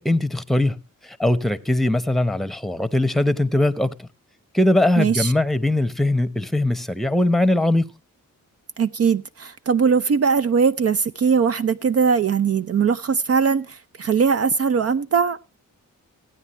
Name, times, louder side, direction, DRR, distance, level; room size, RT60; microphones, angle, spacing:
voice 1, 0.0-4.1 4.5-7.9, left 1 dB, ahead, 0.9 m, -21 dB
voice 2, 5.0-5.3 8.8-15.6, right 6 dB, 45° right, 0.6 m, -20 dB
16.0 x 9.2 x 3.1 m
cardioid pair, 55°, 34 cm